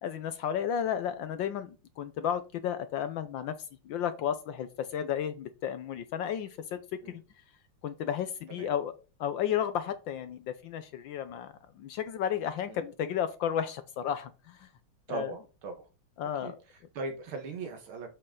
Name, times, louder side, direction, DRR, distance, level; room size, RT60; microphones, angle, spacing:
voice 1, 0.0-3.5 3.8-6.8 7.1-7.2 7.8-8.9 9.2-14.6 15.1-15.3 16.2-16.5, left 9 dB, 70° left, 12 dB, 1.3 m, -33 dB
voice 2, 15.1-15.9 16.2-18.1, right 3 dB, 80° right, 5 dB, 2.2 m, -40 dB
7.6 x 6.5 x 3.8 m, 0.31 s
omnidirectional pair, 2.3 m